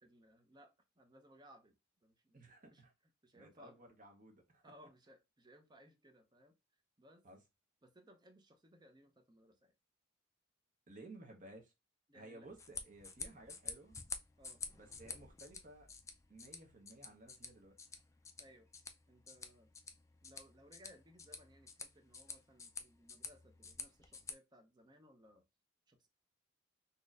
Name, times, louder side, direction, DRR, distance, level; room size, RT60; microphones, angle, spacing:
voice 1, 0.0-2.9 3.2-3.8 4.6-6.6 7.0-7.3 7.8-9.7 12.1-12.5 14.4-14.6 18.4-18.7 19.1-19.7 20.2-25.5 25.9-26.1, equal, 20° right, 0.6 m, -63 dB
voice 2, 2.3-2.9 3.3-4.6 7.2-7.4 10.9-11.7 12.1-14.0 14.7-15.9 16.3-17.8, right 2 dB, 40° right, 1.0 m, -56 dB
sound 1, 12.4-24.3, left 5 dB, 15° left, 0.4 m, -50 dB
4.1 x 2.9 x 2.4 m
head